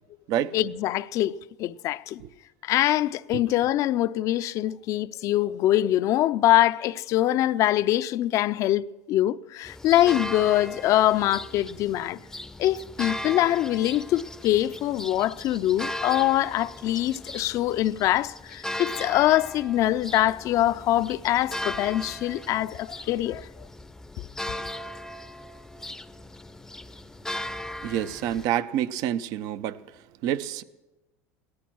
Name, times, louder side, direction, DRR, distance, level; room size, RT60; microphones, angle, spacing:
voice 1, 0.5-2.2 2.6-12.2 12.6-23.5, left 14 dB, 55° left, 0.5 m, -24 dB
sound 1, 9.6-28.5, left 1 dB, 5° left, 0.6 m, -38 dB
voice 2, 27.8-29.8 30.2-30.6, right 11 dB, 65° right, 0.7 m, -27 dB
17.5 x 13.5 x 6.3 m
supercardioid pair, 100°, 7 cm